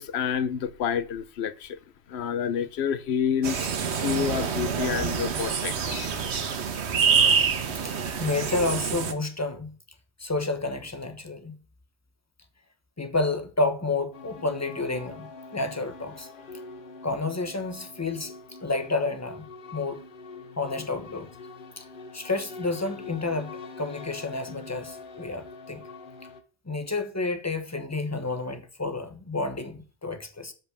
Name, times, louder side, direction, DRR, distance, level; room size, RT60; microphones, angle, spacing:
voice 1, 0.0-1.8 2.1-6.3, left 8 dB, 80° left, 1.0 m, -29 dB
sound 1, 3.4-9.1, right 6 dB, 85° right, 1.2 m, -26 dB
voice 2, 7.8-9.8 10.2-11.6 13.0-16.3 17.0-18.3 18.6-19.5 19.7-20.0 20.6-21.3 21.8-21.9 22.1-25.8 26.7-30.5, left 3 dB, 15° left, 1.0 m, -30 dB
sound 2, 14.1-26.4, left 4 dB, 55° left, 1.1 m, -44 dB
7.6 x 5.5 x 6.6 m
omnidirectional pair, 1.1 m